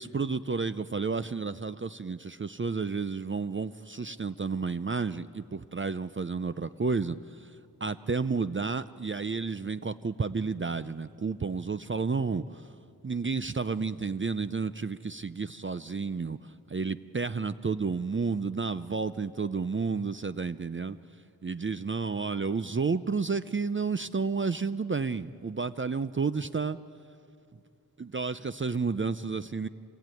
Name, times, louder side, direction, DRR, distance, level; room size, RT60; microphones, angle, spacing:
voice 1, 0.0-7.6 7.8-12.7 13.0-21.0 21.4-26.8 28.0-29.7, right 4 dB, 30° right, 13 dB, 0.5 m, -31 dB
27.5 x 19.5 x 9.1 m, 2.5 s
wide cardioid pair, 80°, 38 cm